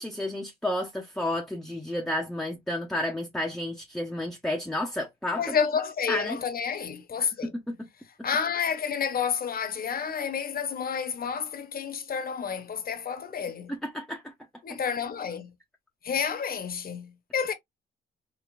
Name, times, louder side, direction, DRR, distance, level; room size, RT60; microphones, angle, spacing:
voice 1, 0.0-5.4 6.1-6.4 7.2-7.3 7.7-7.8 13.7-14.3, left 1 dB, ahead, 0.9 m, -31 dB
voice 2, 5.4-7.5 8.2-13.7 14.6-15.5 16.0-17.5, left 7 dB, 50° left, 1.1 m, -30 dB
5.0 x 2.8 x 2.4 m
cardioid pair, 90°, 20 cm